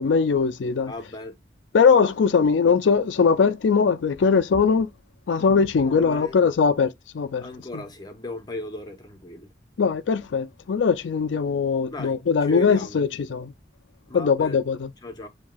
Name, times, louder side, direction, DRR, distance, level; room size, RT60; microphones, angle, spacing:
voice 1, 0.0-0.9 1.7-4.9 5.3-7.4 9.8-13.5 14.1-14.9, left 5 dB, 90° left, 0.4 m, -21 dB
voice 2, 0.9-1.3 5.8-6.4 7.4-9.5 11.9-13.0 14.1-14.6 15.0-15.3, left 1 dB, 20° left, 0.7 m, -36 dB
7.1 x 2.8 x 2.2 m
head